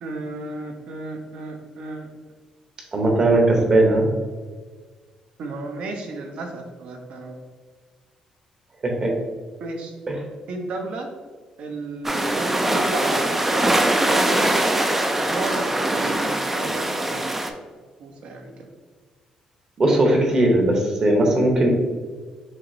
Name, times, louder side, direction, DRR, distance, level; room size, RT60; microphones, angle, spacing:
voice 1, 0.0-2.1 5.4-7.4 9.6-9.9 10.5-11.1 11.6-14.6 15.2-17.3 18.0-18.5, right 2 dB, 65° right, 2 dB, 0.8 m, -33 dB
voice 2, 2.9-4.1 8.8-9.1 10.1-10.2 19.8-21.7, right 1 dB, 30° right, 1 dB, 0.9 m, -18 dB
sound 1, 12.0-17.5, right 1 dB, 10° right, 0.4 m, -22 dB
6.4 x 2.9 x 2.7 m, 1.5 s
cardioid pair, 145°, 2 cm